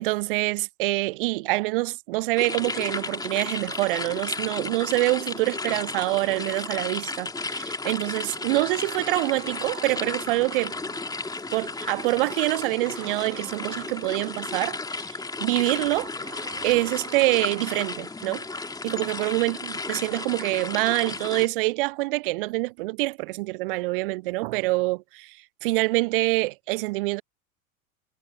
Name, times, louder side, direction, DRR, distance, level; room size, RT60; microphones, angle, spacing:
voice 1, 0.0-10.7 11.5-16.1 16.6-18.5 18.8-27.2, right 22 dB, 45° right, 0.4 m, -26 dB
sound 1, 2.4-21.5, left 3 dB, 10° left, 2.6 m, -34 dB
sound 2, 8.6-11.3 12.8-14.2 16.2-18.2, right 7 dB, 80° right, 2.2 m, -44 dB
figure-of-eight pair, 85°, 42 cm